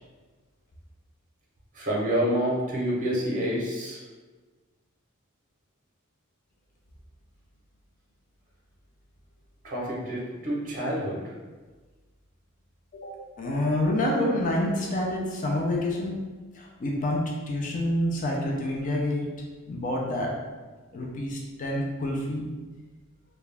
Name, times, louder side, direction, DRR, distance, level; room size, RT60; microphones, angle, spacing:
voice 1, 1.7-4.0 9.6-11.2 13.2-13.3, equal, 40° right, -5 dB, 0.7 m, -28 dB
voice 2, 13.4-16.2 16.5-19.3 19.7-20.3 20.9-22.5, left 1 dB, 35° left, -2 dB, 0.4 m, -27 dB
2.3 x 2.1 x 3.2 m, 1.3 s
head